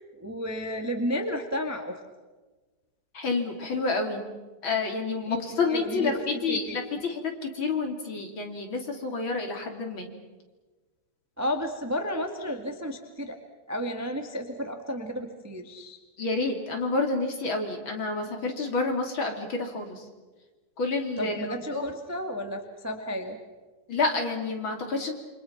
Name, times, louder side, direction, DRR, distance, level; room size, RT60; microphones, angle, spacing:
voice 1, 0.2-2.0 5.3-5.4 5.7-6.2 6.5-6.8 11.4-13.3 13.7-16.0 21.2-23.4, equal, 10° right, 4 dB, 1.2 m, -32 dB
voice 2, 3.1-4.3 4.6-10.1 16.2-20.0 20.8-21.8 23.9-25.1, left 3 dB, 40° left, 3 dB, 3.6 m, -29 dB
28.5 x 25.5 x 6.0 m, 1.3 s
omnidirectional pair, 3.5 m